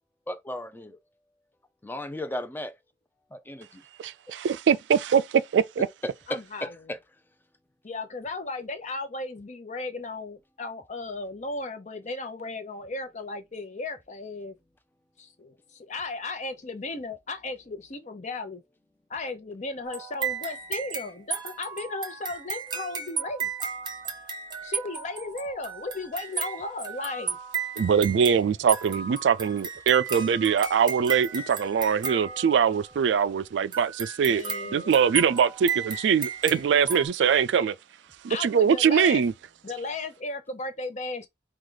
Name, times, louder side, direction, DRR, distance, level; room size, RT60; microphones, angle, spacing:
voice 1, 0.3-1.0 1.8-2.7 3.3-3.8 6.0-7.0, left 1 dB, 10° left, 0.5 m, -35 dB
voice 2, 4.0-5.9 27.8-34.4 34.7-37.8 38.2-39.3, right 7 dB, 75° right, 0.3 m, -22 dB
voice 3, 6.3-6.7 7.8-14.5 15.2-15.5 15.9-18.6 19.1-23.5 24.6-27.4 34.3-35.1 38.3-39.2 39.6-41.3, left 3 dB, 40° left, 0.8 m, -35 dB
sound 1, 19.8-33.0 33.7-37.1, right 6 dB, 25° right, 0.9 m, -34 dB
4.8 x 2.4 x 3.8 m
head